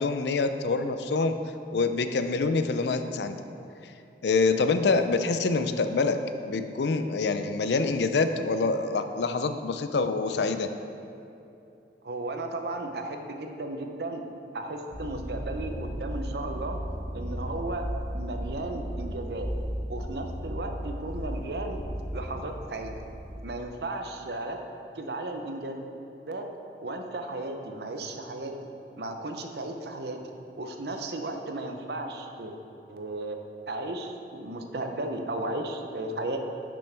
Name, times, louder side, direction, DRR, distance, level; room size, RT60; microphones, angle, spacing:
voice 1, 0.0-1.4 1.7-3.4 4.2-6.2 6.5-10.7, left 4 dB, 75° left, 9 dB, 0.4 m, -26 dB
voice 2, 12.0-14.2 14.5-16.8 17.1-19.5 19.9-21.8 22.1-23.0 23.4-24.6 24.9-25.9 26.3-26.5 26.8-28.5 29.0-30.2 30.6-32.5 32.9-33.4 33.7-36.4, right 2 dB, 65° right, 4 dB, 0.7 m, -35 dB
sound 1, 14.9-23.4, equal, ahead, 1.9 m, -35 dB
10.5 x 6.1 x 3.4 m, 2.7 s
head